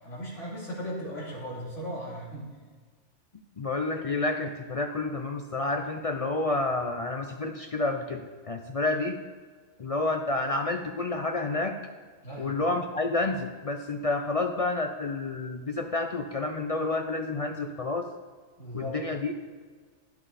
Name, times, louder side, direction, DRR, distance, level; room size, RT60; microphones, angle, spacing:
voice 1, 0.0-2.5 12.2-12.6 18.6-19.0, equal, 90° left, -4 dB, 2.9 m, -37 dB
voice 2, 3.6-9.2 9.8-11.8 12.4-18.1 18.7-19.3, left 2 dB, 45° left, 4 dB, 0.4 m, -29 dB
11.0 x 10.0 x 4.1 m, 1.5 s
omnidirectional pair, 1.2 m